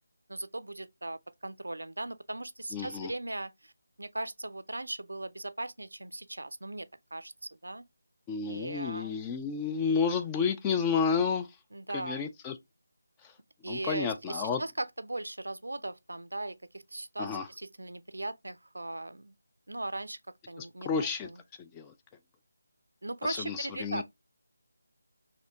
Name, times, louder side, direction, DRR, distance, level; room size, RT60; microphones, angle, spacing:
voice 1, 0.3-3.7 4.0-7.3 7.6-7.8 8.4-9.1 11.7-12.2 13.6-19.4 19.7-20.2 20.5-21.4 23.0-24.0, right 2 dB, 75° right, 0.4 m, -38 dB
voice 2, 2.7-3.1 8.3-11.5 11.9-12.5 13.7-14.6 17.2-17.5 20.6-21.3 21.6-21.9 23.4-24.0, left 5 dB, 15° left, 0.3 m, -31 dB
4.1 x 2.8 x 2.7 m
figure-of-eight pair, 160°, 0 cm